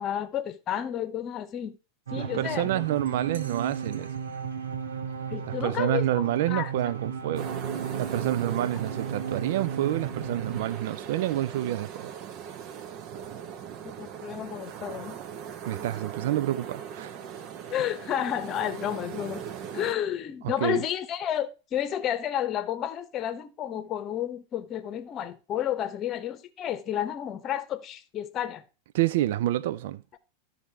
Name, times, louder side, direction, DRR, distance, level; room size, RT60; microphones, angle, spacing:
voice 1, 0.0-1.8 2.1-2.8 5.3-6.7 13.8-15.2 17.7-19.4 19.7-28.6, left 10 dB, 35° left, 0.9 m, -31 dB
sound 1, 2.1-10.6, right 7 dB, 80° right, 1.3 m, -35 dB
voice 2, 2.2-4.1 5.6-7.5 8.0-12.1 15.6-17.1 20.4-20.8 28.9-30.0, right 13 dB, 60° right, 0.3 m, -28 dB
sound 2, 7.4-20.0, right 8 dB, 45° right, 0.9 m, -39 dB
12.5 x 4.2 x 4.4 m
hypercardioid pair, 95°, 0 cm